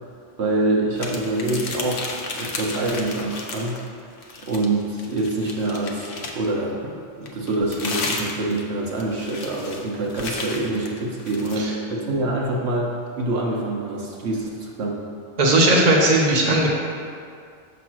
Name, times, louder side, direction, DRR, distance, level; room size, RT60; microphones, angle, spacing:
voice 1, 0.4-3.8 4.4-6.8 7.2-15.0, right 2 dB, 70° right, -3 dB, 1.0 m, -25 dB
sound 1, 1.0-3.9 4.2-6.5 7.2-11.6, left 3 dB, 60° left, 0.8 m, -33 dB
voice 2, 15.4-16.7, right 1 dB, 40° right, -2 dB, 1.0 m, -17 dB
6.8 x 3.1 x 5.9 m, 2.3 s
omnidirectional pair, 1.2 m